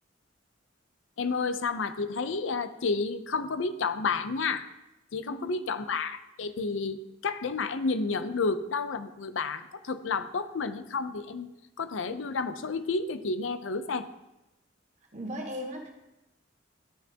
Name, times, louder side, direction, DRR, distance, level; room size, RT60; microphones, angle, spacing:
voice 1, 1.2-4.7 5.1-11.5 11.8-14.1, left 4 dB, 70° left, 10 dB, 0.6 m, -31 dB
voice 2, 5.3-5.8 15.1-15.9, equal, 40° right, 0 dB, 1.5 m, -38 dB
12.0 x 5.9 x 2.8 m, 0.93 s
head